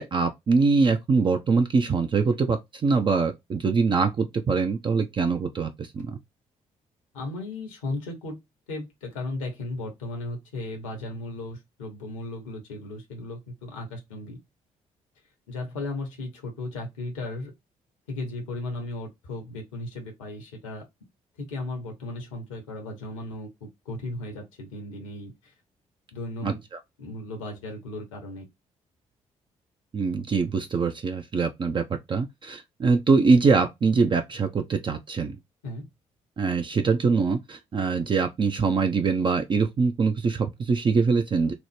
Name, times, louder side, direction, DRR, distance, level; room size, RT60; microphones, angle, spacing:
voice 1, 0.0-6.2 26.4-26.5 29.9-35.4 36.4-41.5, right 4 dB, 30° right, 0.4 m, -23 dB
voice 2, 7.1-8.4 8.7-14.4 15.5-17.5 18.1-20.8 21.4-25.5 26.1-26.6 27.0-28.5 35.6-35.9, left 2 dB, 75° left, 0.8 m, -36 dB
3.0 x 2.0 x 3.2 m
figure-of-eight pair, 40°, 17 cm